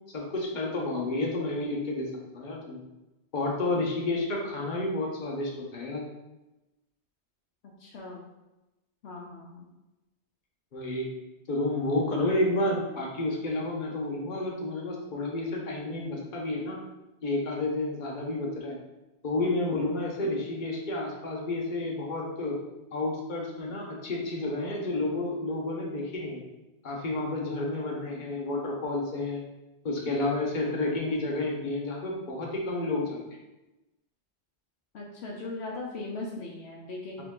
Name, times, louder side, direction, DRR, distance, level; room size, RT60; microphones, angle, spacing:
voice 1, 0.1-2.8 3.3-6.0 10.7-11.1 11.5-16.8 17.2-18.8 19.2-22.6 22.9-26.4 26.8-29.4 29.8-33.2, left 2 dB, 45° left, -2 dB, 1.0 m, -30 dB
voice 2, 7.8-8.3 9.0-9.7 34.9-37.2, left 2 dB, 70° left, -2 dB, 0.9 m, -39 dB
3.8 x 3.4 x 3.6 m, 1.0 s
omnidirectional pair, 1.2 m